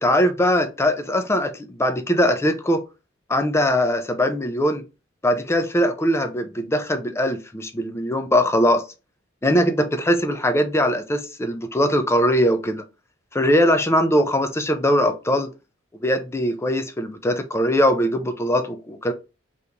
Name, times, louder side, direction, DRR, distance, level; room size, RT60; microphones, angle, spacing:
voice 1, 0.0-2.8 3.3-4.8 5.2-8.8 9.4-12.8 13.3-15.5 16.0-19.1, equal, 15° left, 0.4 m, -21 dB
2.8 x 2.6 x 3.5 m
head